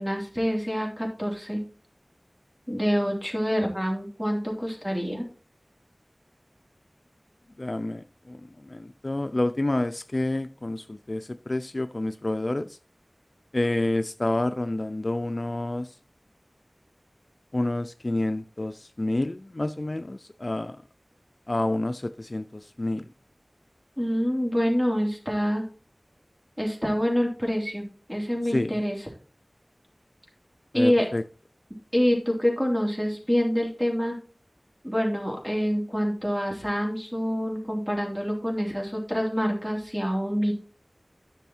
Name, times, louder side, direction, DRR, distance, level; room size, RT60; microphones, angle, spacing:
voice 1, 0.0-1.6 2.7-5.2 24.0-25.6 26.6-27.8 28.1-29.0 30.7-31.1 31.9-34.1 34.8-40.5, equal, 15° right, 3.3 m, -26 dB
voice 2, 7.6-12.8 13.5-15.9 17.5-20.8 21.5-23.1 28.4-28.8 30.7-31.2, left 2 dB, 50° left, 0.4 m, -29 dB
10.5 x 6.3 x 4.3 m
wide cardioid pair, 50°, 0 cm